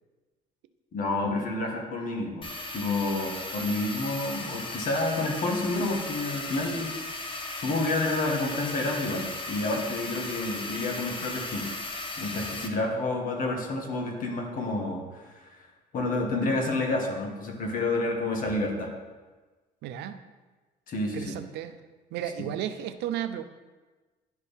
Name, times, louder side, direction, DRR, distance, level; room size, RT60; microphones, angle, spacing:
voice 1, 0.9-2.5 2.7-7.1 7.6-11.6 12.2-15.4 15.9-18.9 20.9-21.3, left 2 dB, 55° left, 1 dB, 1.5 m, -29 dB
sound 1, 2.4-12.7, left 2 dB, 30° left, 0.9 m, -36 dB
voice 2, 19.8-20.2 21.1-21.7 22.1-23.4, right 10 dB, 80° right, 10 dB, 0.5 m, -33 dB
11.0 x 4.4 x 3.5 m, 1.3 s
cardioid pair, 110°, 17 cm